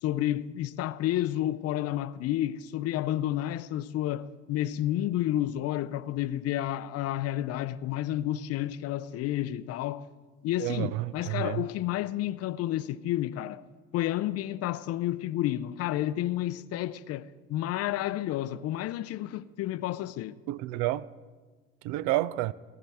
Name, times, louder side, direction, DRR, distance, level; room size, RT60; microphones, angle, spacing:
voice 1, 0.0-10.1 10.4-13.6 13.9-20.4, left 13 dB, 50° left, 0.5 m, -30 dB
voice 2, 10.6-11.6 20.5-21.1 21.8-22.5, right 16 dB, 60° right, 0.5 m, -29 dB
18.0 x 10.5 x 3.5 m
hypercardioid pair, 70°, 33 cm